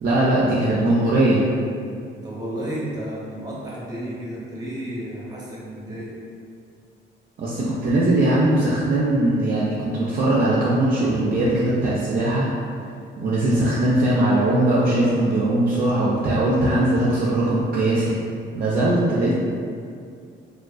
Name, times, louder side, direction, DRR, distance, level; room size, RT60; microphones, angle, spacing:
voice 1, 0.0-1.4 7.4-12.5 13.2-18.2 18.6-19.3, right 1 dB, 50° right, -7 dB, 0.4 m, -20 dB
voice 2, 2.2-6.1, right 1 dB, 20° right, -7 dB, 0.8 m, -32 dB
2.4 x 2.2 x 2.3 m, 2.3 s
cardioid pair, 90°, 20 cm